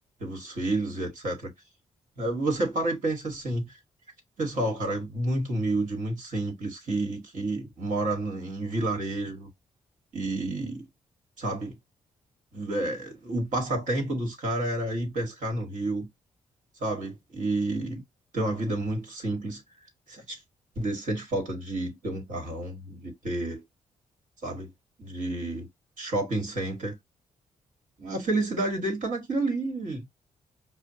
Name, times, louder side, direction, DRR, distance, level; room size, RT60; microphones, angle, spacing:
voice 1, 0.2-1.5 2.2-3.8 4.4-9.5 10.1-10.8 11.4-11.8 12.5-16.1 16.8-18.0 18.3-19.6 20.1-20.4 20.7-23.6 24.4-24.7 25.0-25.7 26.0-27.0 28.0-30.0, right 2 dB, 65° right, 1.4 m, -30 dB
5.0 x 2.2 x 2.7 m
supercardioid pair, 50°, 14 cm